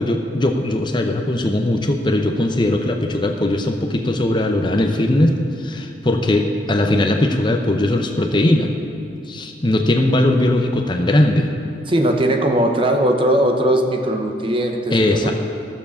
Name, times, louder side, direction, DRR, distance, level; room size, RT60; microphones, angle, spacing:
voice 1, 0.0-8.7 9.3-11.5 14.9-15.3, left 1 dB, 25° left, 4 dB, 0.7 m, -19 dB
voice 2, 11.9-15.3, right 1 dB, 30° right, 4 dB, 0.9 m, -19 dB
14.5 x 7.1 x 7.0 m, 2.6 s
head